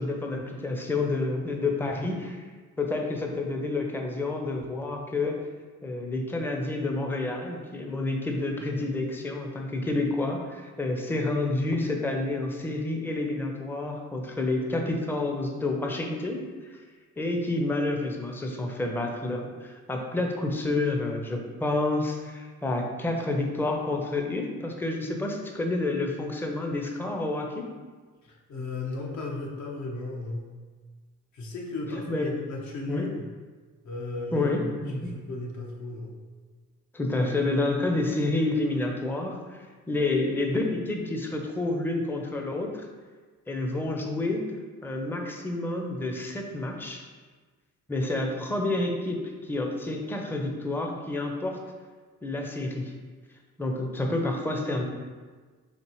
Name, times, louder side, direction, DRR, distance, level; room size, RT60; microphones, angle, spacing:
voice 1, 0.0-2.4 2.8-5.4 5.8-16.8 17.2-27.7 32.1-32.3 32.9-33.1 34.3-35.1 36.9-42.9 43.5-44.4 44.8-47.0 47.9-51.6 52.2-52.9 53.6-54.8, left 2 dB, 5° left, 2 dB, 0.5 m, -29 dB
voice 2, 28.2-30.5 31.3-33.3 33.8-36.1, left 2 dB, 70° left, -1 dB, 0.9 m, -35 dB
4.3 x 3.2 x 3.0 m, 1.4 s
cardioid pair, 90°, 30 cm